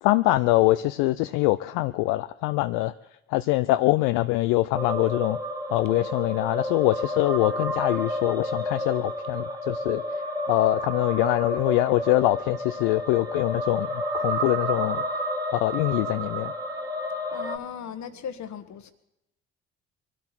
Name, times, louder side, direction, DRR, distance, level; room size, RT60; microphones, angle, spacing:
voice 1, 0.0-2.9 3.3-5.4 5.7-10.0 10.5-15.2 15.5-16.5, left 18 dB, 80° left, 12 dB, 0.5 m, -24 dB
sound 1, 4.8-17.6, equal, 10° right, 2.0 m, -30 dB
voice 2, 17.3-18.9, left 7 dB, 60° left, 11 dB, 1.4 m, -37 dB
22.5 x 12.5 x 4.4 m, 0.86 s
hypercardioid pair, 55°, 33 cm